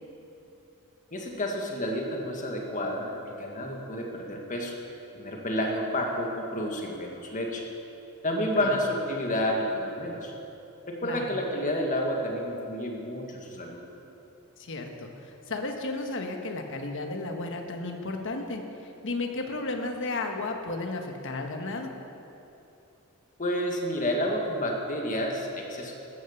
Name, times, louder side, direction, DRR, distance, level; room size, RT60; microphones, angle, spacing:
voice 1, 1.1-4.7 5.1-7.6 8.2-10.3 10.9-13.8 23.4-25.9, left 1 dB, 35° left, 0 dB, 1.8 m, -30 dB
voice 2, 8.4-8.7 11.0-11.2 14.6-21.9, left 2 dB, 60° left, 3 dB, 1.4 m, -34 dB
14.0 x 10.0 x 7.2 m, 2.9 s
head